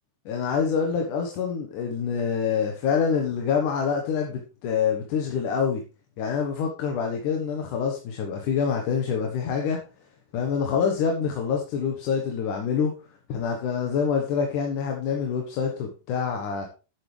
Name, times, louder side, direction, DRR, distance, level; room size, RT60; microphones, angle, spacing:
voice 1, 0.3-5.8 6.2-9.8 10.3-12.9 13.3-16.7, left 6 dB, 65° left, 2 dB, 2.7 m, -26 dB
11.5 x 8.7 x 3.4 m, 0.31 s
omnidirectional pair, 4.3 m